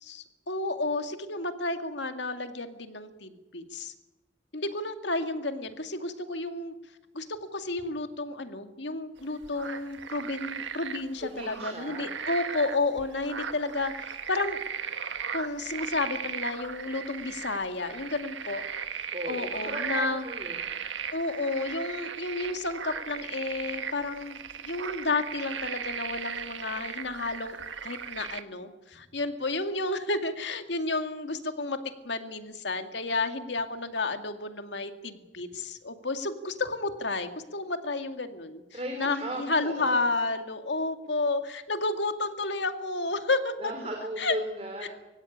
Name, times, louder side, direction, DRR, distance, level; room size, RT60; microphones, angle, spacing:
voice 1, 0.0-3.9 4.5-6.7 7.1-14.6 15.3-18.6 19.2-20.2 21.1-24.4 24.6-27.6 27.8-31.8 32.0-43.7 44.2-44.4 44.8-44.9, left 3 dB, 70° left, 7 dB, 2.2 m, -31 dB
sound 1, 9.2-28.4, right 7 dB, 90° right, 1.5 m, -37 dB
voice 2, 11.2-12.1 19.1-20.7 38.7-40.0 43.6-44.9, right 1 dB, 35° right, 3 dB, 3.7 m, -36 dB
23.0 x 16.5 x 10.0 m, 1.1 s
head